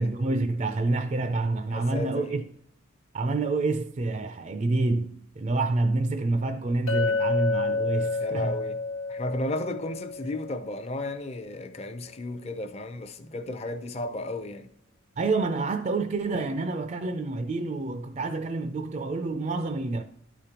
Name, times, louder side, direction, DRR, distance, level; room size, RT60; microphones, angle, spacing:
voice 1, 0.0-2.4 3.1-8.6 15.2-20.0, right 3 dB, 35° right, 0.4 m, -28 dB
voice 2, 1.7-2.4 8.2-8.8 9.1-14.7, left 1 dB, 30° left, 0.5 m, -34 dB
Chink clink, 6.9-11.1, left 3 dB, 80° left, 0.9 m, -30 dB
12.0 x 5.0 x 2.9 m
head